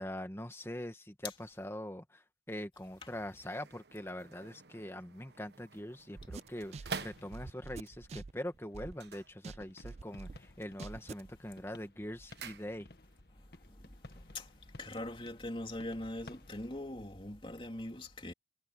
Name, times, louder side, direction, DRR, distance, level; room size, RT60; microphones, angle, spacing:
voice 1, 0.0-12.9, left 1 dB, 15° left, 1.9 m, -43 dB
sound 1, 2.8-7.8 8.9-10.0 10.3-10.8 11.2-13.2 13.5-13.6, right 4 dB, 70° right, 1.2 m, -48 dB
sound 2, 6.2-9.1 9.4-11.3, right 3 dB, 35° right, 0.4 m, -46 dB
sound 3, 7.2-16.8, left 2 dB, 60° left, 1.5 m, -58 dB
voice 2, 14.8-18.3, left 1 dB, 30° left, 3.1 m, -41 dB
head